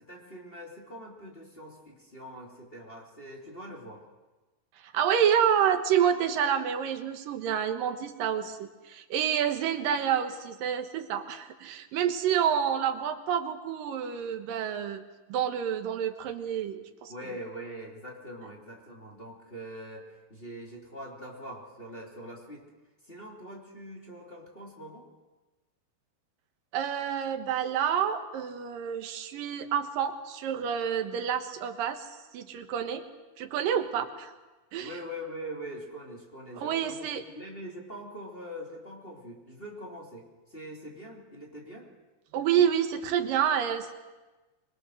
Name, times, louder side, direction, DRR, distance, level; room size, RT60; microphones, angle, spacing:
voice 1, 0.1-4.0 17.1-22.7 23.0-25.0 34.8-37.1 37.3-41.9, equal, 15° left, -2 dB, 2.9 m, -43 dB
voice 2, 4.9-15.0 15.3-17.4 26.7-32.1 32.3-33.1 33.4-34.3 34.7-34.9 36.6-37.2 42.3-43.9, right 8 dB, 85° right, 7 dB, 3.0 m, -28 dB
25.0 x 22.0 x 6.4 m, 1.2 s
omnidirectional pair, 3.8 m